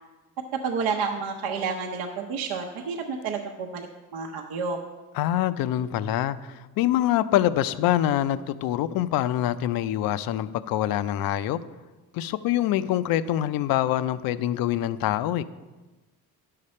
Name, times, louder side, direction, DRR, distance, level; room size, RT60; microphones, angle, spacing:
voice 1, 0.6-4.8, right 5 dB, 75° right, 2 dB, 0.8 m, -30 dB
voice 2, 5.1-11.6 12.1-15.4, left 12 dB, 65° left, 14 dB, 0.5 m, -25 dB
10.5 x 6.7 x 4.3 m, 1.2 s
cardioid pair, 130°, 38 cm